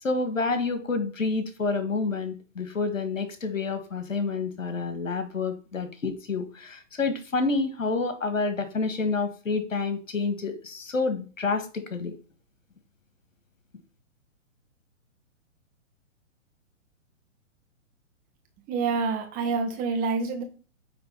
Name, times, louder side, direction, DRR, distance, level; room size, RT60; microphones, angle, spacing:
voice 1, 0.0-12.1, left 4 dB, 80° left, 9 dB, 1.6 m, -28 dB
voice 2, 18.7-20.4, right 4 dB, 20° right, 4 dB, 1.3 m, -27 dB
8.9 x 3.4 x 5.2 m, 0.37 s
figure-of-eight pair, 120°, 38 cm